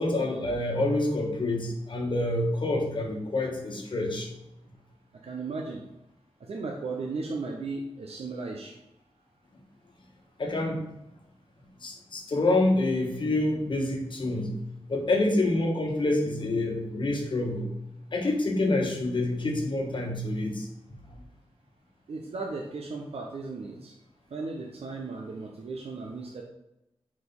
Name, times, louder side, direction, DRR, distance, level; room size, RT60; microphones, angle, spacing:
voice 1, 0.0-4.3 10.4-10.9 11.8-14.5 14.9-17.7 18.1-20.7, left 2 dB, 50° left, 1 dB, 1.3 m, -27 dB
voice 2, 5.2-5.8 6.5-8.7 22.1-23.9 24.3-26.4, right 3 dB, 75° right, 1 dB, 0.7 m, -36 dB
5.0 x 4.2 x 5.2 m, 0.91 s
wide cardioid pair, 135°, 10 cm